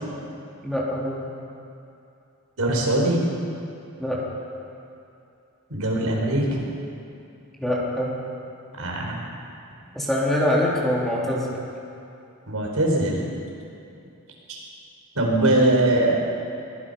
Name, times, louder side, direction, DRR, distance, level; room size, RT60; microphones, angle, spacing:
voice 1, 0.6-1.2 4.0-4.2 7.6-8.2 9.9-11.6, left 1 dB, ahead, -5 dB, 3.5 m, -24 dB
voice 2, 2.6-3.2 5.7-6.6 8.8-9.1 12.5-13.2 14.5-14.6 15.1-16.2, right 1 dB, 75° right, -1 dB, 4.9 m, -21 dB
23.5 x 20.0 x 5.7 m, 2.7 s
head